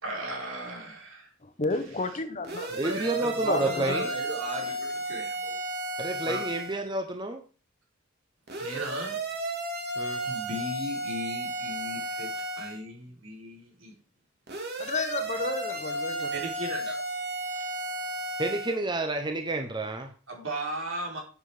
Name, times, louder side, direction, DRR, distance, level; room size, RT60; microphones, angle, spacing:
voice 1, 0.0-1.3 2.7-5.5 6.2-6.4 8.6-9.2 10.2-13.9 16.3-17.0 20.3-21.2, right 1 dB, 80° right, 4.6 m, -37 dB
voice 2, 1.4-2.7 3.5-4.0 14.8-16.3, left 3 dB, 35° left, 1.3 m, -31 dB
sound 1, 2.4-6.8 8.5-12.8 14.5-18.8, right 1 dB, 55° right, 3.2 m, -33 dB
voice 3, 2.8-4.1 6.0-7.4 10.0-10.2 18.4-20.1, right 2 dB, 25° right, 1.1 m, -30 dB
9.8 x 8.0 x 5.1 m
head